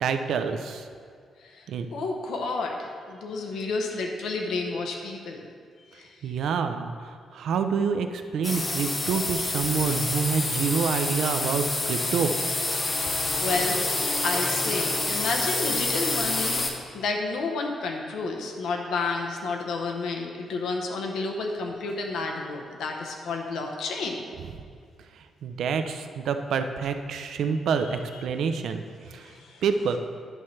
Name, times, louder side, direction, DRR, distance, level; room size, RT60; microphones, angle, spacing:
voice 1, 0.0-0.8 1.7-1.9 6.2-12.3 25.4-28.8 29.1-29.3 29.6-30.0, right 6 dB, 70° right, 7 dB, 0.5 m, -27 dB
voice 2, 1.9-5.5 5.9-6.1 13.4-13.9 14.2-24.2 27.9-28.2 29.2-29.6, left 3 dB, 85° left, 1 dB, 0.8 m, -31 dB
sound 1, 8.4-16.7, left 2 dB, 25° left, 0.7 m, -27 dB
10.5 x 5.6 x 3.2 m, 2.1 s
wide cardioid pair, 165°, 0 cm